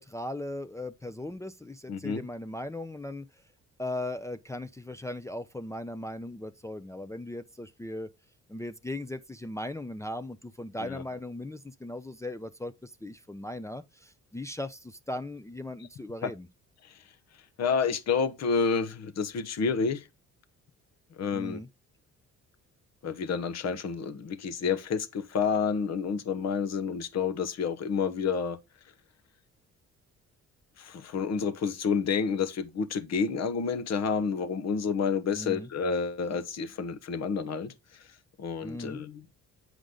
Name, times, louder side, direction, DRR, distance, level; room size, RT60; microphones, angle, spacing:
voice 1, 0.0-3.2 3.8-8.1 8.5-16.5 21.3-21.7 35.3-35.7 38.6-39.0, left 1 dB, 10° left, 0.5 m, -38 dB
voice 2, 1.9-2.2 10.9-11.0 16.2-16.3 17.6-20.0 21.2-21.6 23.0-28.6 30.8-37.7 38.4-39.2, left 5 dB, 60° left, 1.0 m, -29 dB
7.9 x 5.1 x 3.8 m
cardioid pair, 90°, 30 cm